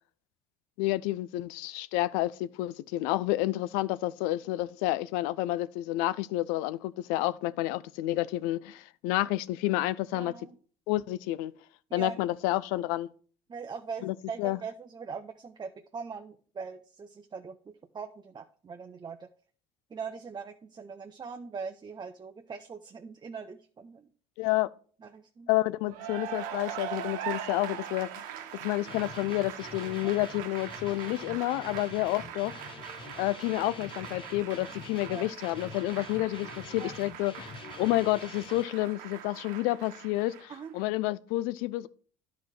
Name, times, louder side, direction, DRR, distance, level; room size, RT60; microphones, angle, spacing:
voice 1, 0.8-10.3 10.9-11.5 11.9-13.1 14.0-14.6 24.4-24.7 25.5-28.2 28.6-32.6 33.2-37.5 37.8-41.9, left 17 dB, 80° left, 0.5 m, -30 dB
voice 2, 10.1-10.6 11.9-12.2 13.5-19.3 19.9-24.1 25.0-25.5 30.0-30.2 35.1-35.3 36.8-36.9 40.5-40.8, right 5 dB, 30° right, 0.8 m, -41 dB
Cheering / Applause, 25.8-40.8, right 10 dB, 75° right, 1.2 m, -42 dB
Guitar, 28.9-38.6, left 5 dB, 35° left, 1.1 m, -47 dB
10.5 x 4.8 x 5.9 m
supercardioid pair, 80°, 15 cm